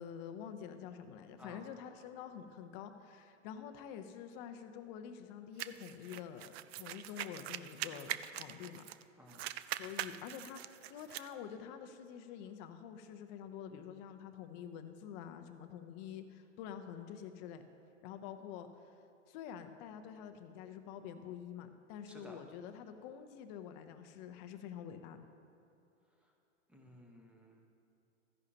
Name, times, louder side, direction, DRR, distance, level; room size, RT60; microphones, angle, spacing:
voice 1, 0.0-8.8 9.8-17.6 18.0-18.7 19.3-25.2, left 8 dB, 35° left, 8 dB, 0.7 m, -47 dB
sound 1, 5.6-9.0 9.3-11.3, right 12 dB, 55° right, 0.5 m, -43 dB
voice 2, 22.1-22.4 26.7-27.6, equal, 5° right, 0 dB, 1.1 m, -55 dB
14.5 x 10.5 x 2.9 m, 2.8 s
hypercardioid pair, 130°, 38 cm